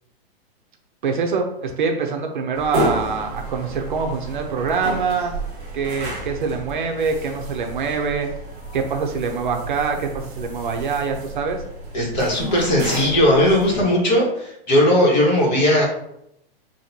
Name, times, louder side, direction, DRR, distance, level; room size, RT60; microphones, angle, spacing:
voice 1, 1.0-5.3 5.7-8.3 8.7-11.6, right 5 dB, 50° right, 4 dB, 0.7 m, -24 dB
sound 1, 2.5-13.8, right 2 dB, 30° right, 1.5 m, -31 dB
voice 2, 11.9-15.9, left 1 dB, 45° left, -3 dB, 1.6 m, -18 dB
6.2 x 2.9 x 2.8 m, 0.77 s
hypercardioid pair, 175°, 31 cm